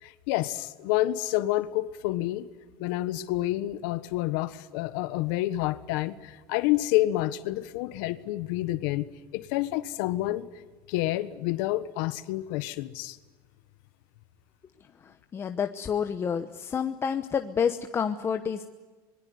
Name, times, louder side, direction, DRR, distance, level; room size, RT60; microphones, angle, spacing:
voice 1, 0.0-2.5 2.8-10.5 10.9-13.2, left 16 dB, 70° left, 13 dB, 1.4 m, -29 dB
voice 2, 15.3-18.6, left 7 dB, 20° left, 7 dB, 1.0 m, -29 dB
25.0 x 22.0 x 9.6 m, 1.3 s
cardioid pair, 150°, 11 cm